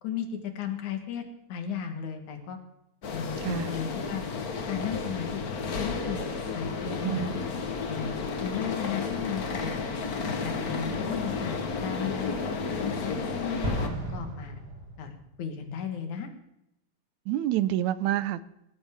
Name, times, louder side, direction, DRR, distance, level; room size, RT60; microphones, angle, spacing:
voice 1, 0.0-2.6 3.1-4.2 4.6-5.4 5.8-6.2 6.5-7.4 7.7-8.2 8.4-9.8 10.1-13.8 14.1-14.6 15.0-16.3, left 7 dB, 80° left, 6 dB, 2.9 m, -35 dB
sound 1, 3.0-13.9, left 4 dB, 50° left, 1.1 m, -32 dB
Explosion, 13.6-15.5, right 1 dB, 35° right, 2.5 m, -34 dB
voice 2, 17.3-18.4, right 13 dB, 80° right, 16 dB, 1.9 m, -27 dB
18.0 x 13.0 x 3.6 m, 0.84 s
omnidirectional pair, 3.3 m